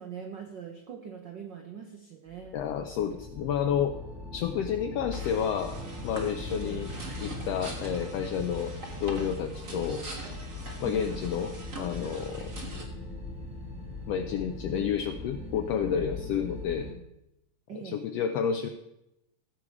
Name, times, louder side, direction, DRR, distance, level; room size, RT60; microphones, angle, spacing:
voice 1, 0.0-2.6 6.5-6.9 10.8-11.2 17.7-18.1, right 7 dB, 75° right, 4 dB, 1.0 m, -42 dB
sound 1, 2.3-16.9, left 2 dB, 5° right, 1.1 m, -40 dB
voice 2, 2.5-3.9 4.3-5.8 6.0-6.9 7.2-8.7 9.0-10.0 10.8-12.5 14.1-16.9 17.8-18.7, left 8 dB, 80° left, 8 dB, 1.4 m, -30 dB
sound 2, 2.8-9.8, right 5 dB, 60° right, 1.4 m, -54 dB
sound 3, 5.1-12.8, right 1 dB, 35° right, 1.6 m, -43 dB
16.0 x 7.7 x 4.8 m, 0.88 s
omnidirectional pair, 3.5 m